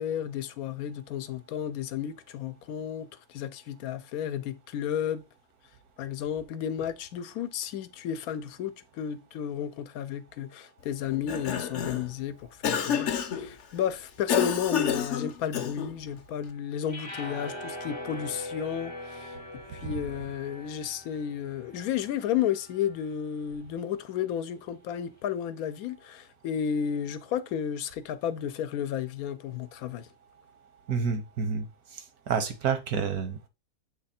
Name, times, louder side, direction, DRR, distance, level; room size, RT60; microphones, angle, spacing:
voice 1, 0.0-5.2 6.0-12.4 12.6-19.4 19.7-30.1, left 9 dB, 75° left, 1.1 m, -32 dB
Cough, 11.1-12.1 12.6-13.5 14.3-16.0, left 8 dB, 60° left, 0.9 m, -29 dB
sound 1, 16.9-23.2, left 1 dB, 25° left, 0.6 m, -42 dB
voice 2, 30.9-31.7 31.9-33.5, right 6 dB, 75° right, 1.5 m, -29 dB
7.7 x 3.2 x 4.2 m
omnidirectional pair, 1.6 m